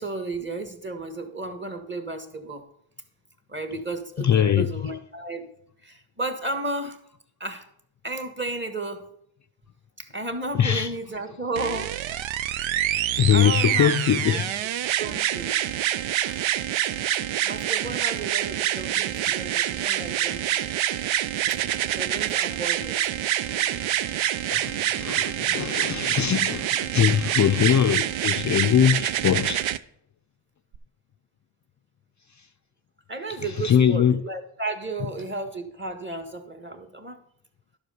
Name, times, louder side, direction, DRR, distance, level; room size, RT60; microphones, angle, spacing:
voice 1, 0.0-2.7 3.5-5.5 5.8-7.0 7.4-7.7 8.0-9.0 10.0-12.0 13.3-13.9 14.3-14.5 15.0-15.6 16.2-16.4 17.4-20.7 22.0-23.0 33.1-37.2, right 2 dB, 25° right, 1.6 m, -33 dB
voice 2, 4.2-4.7 10.6-10.9 13.2-14.6 23.5-24.1 24.5-29.6 33.6-34.2, left 9 dB, 40° left, 0.4 m, -22 dB
sound 1, 11.6-29.8 30.7-30.8, right 12 dB, 90° right, 0.5 m, -26 dB
11.5 x 4.8 x 6.6 m
cardioid pair, 70°, 46 cm